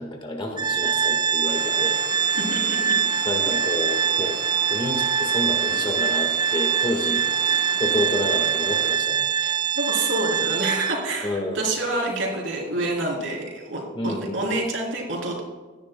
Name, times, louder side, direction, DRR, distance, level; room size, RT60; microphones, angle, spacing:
voice 1, 0.0-2.0 3.2-4.4 4.7-9.3 10.3-10.4 11.2-11.6 13.9-14.5, left 1 dB, 25° left, 3 dB, 1.5 m, -29 dB
Organ, 0.6-11.2, right 7 dB, 25° right, 0.4 m, -23 dB
sound 1, 1.4-9.0, left 4 dB, 50° left, 1.1 m, -39 dB
voice 2, 2.3-3.0 9.4-15.4, right 2 dB, 75° right, -1 dB, 3.3 m, -28 dB
16.0 x 10.5 x 2.2 m, 1.3 s
head